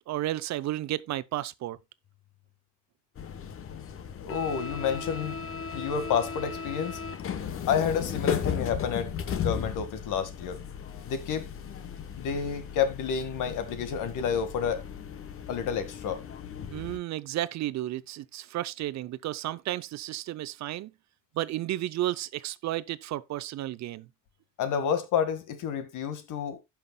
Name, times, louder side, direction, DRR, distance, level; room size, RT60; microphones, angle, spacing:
voice 1, 0.1-1.8 16.7-20.9 21.3-24.1, right 14 dB, 55° right, 0.6 m, -32 dB
sound 1, 3.1-17.0, left 7 dB, 40° left, 1.0 m, -36 dB
voice 2, 4.2-5.4 5.7-7.0 7.7-9.1 9.4-10.6 11.1-11.5 12.1-14.8 15.5-16.2 24.6-26.6, left 7 dB, 70° left, 1.9 m, -29 dB
16.5 x 5.8 x 2.2 m
cardioid pair, 115°, 33 cm